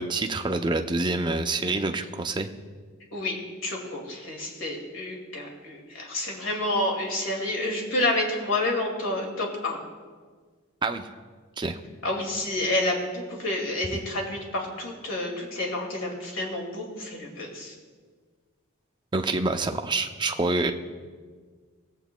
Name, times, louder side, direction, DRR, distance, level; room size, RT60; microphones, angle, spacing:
voice 1, 0.0-2.5 10.8-11.1 11.6-11.8 19.1-20.7, right 2 dB, 20° right, 6 dB, 0.5 m, -27 dB
voice 2, 3.6-9.8 12.0-17.7, left 1 dB, 70° left, 0 dB, 2.2 m, -29 dB
20.0 x 8.0 x 2.2 m, 1.5 s
head